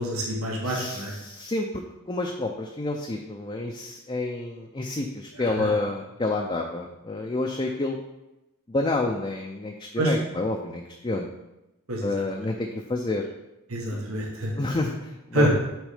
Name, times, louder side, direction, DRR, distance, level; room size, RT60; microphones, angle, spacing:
voice 1, 0.0-1.1 5.6-5.7 10.0-10.1 11.9-12.1 13.7-14.6 15.3-15.5, right 1 dB, 85° right, -1 dB, 1.3 m, -26 dB
voice 2, 0.6-8.0 8.7-11.3 12.0-13.2 13.9-14.0 14.6-15.5, left 2 dB, 25° left, 1 dB, 0.4 m, -29 dB
6.2 x 4.3 x 5.0 m, 0.97 s
head